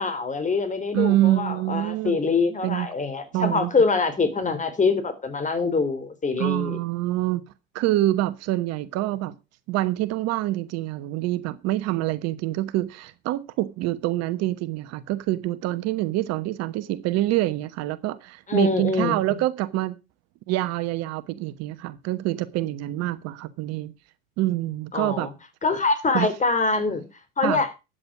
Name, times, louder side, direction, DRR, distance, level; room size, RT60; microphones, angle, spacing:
voice 1, 0.0-6.8 18.5-19.4 24.9-25.3 25.6-27.0 27.4-27.7, left 4 dB, 25° left, 3.6 m, -24 dB
voice 2, 0.9-2.2 2.6-2.9 3.3-3.7 6.4-7.4 7.7-9.3 9.7-20.0 20.5-23.9 24.4-25.3 26.1-26.3 27.4-27.6, right 15 dB, 60° right, 1.2 m, -26 dB
13.5 x 8.9 x 4.9 m
hypercardioid pair, 75°, 30 cm